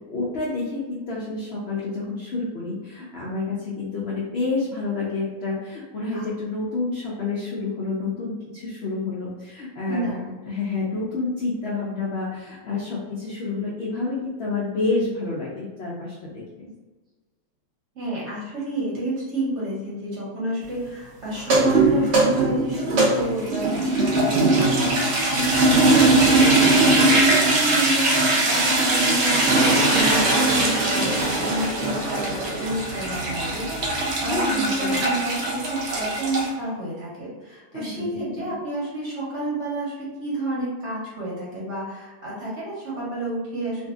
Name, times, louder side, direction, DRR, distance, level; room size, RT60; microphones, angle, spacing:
voice 1, 0.1-10.1 10.5-16.3 16.6-16.7 34.1-35.1 37.7-38.5, left 3 dB, 75° left, -6 dB, 0.5 m, -29 dB
voice 2, 9.9-10.4 18.0-43.9, right 1 dB, 55° right, -6 dB, 0.9 m, -30 dB
sound 1, 21.4-36.5, right 2 dB, 75° right, 0.6 m, -20 dB
2.6 x 2.6 x 2.3 m, 1.3 s
omnidirectional pair, 1.8 m